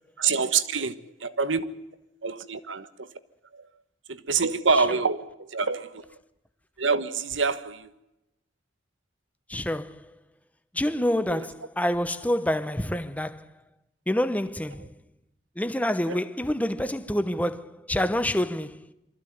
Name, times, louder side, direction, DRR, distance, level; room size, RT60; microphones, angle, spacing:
voice 1, 0.2-1.6 2.2-3.1 3.5-3.6 4.1-6.1 6.8-7.9 11.3-11.4 16.1-16.2, right 5 dB, 85° right, 1.3 m, -26 dB
voice 2, 9.5-10.1 10.7-13.5 14.1-14.9 15.6-18.9, left 1 dB, 10° left, 0.9 m, -27 dB
24.0 x 15.0 x 9.4 m
head